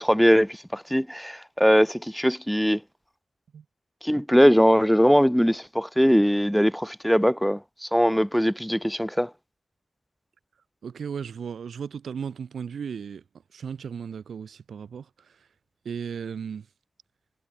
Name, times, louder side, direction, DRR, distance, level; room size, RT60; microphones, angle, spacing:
voice 1, 0.0-2.8 4.0-9.3, equal, ahead, 0.5 m, -21 dB
voice 2, 10.8-13.2 13.5-15.4 15.8-16.7, right 7 dB, 75° right, 2.9 m, -35 dB
wide cardioid pair, 105°, 0 cm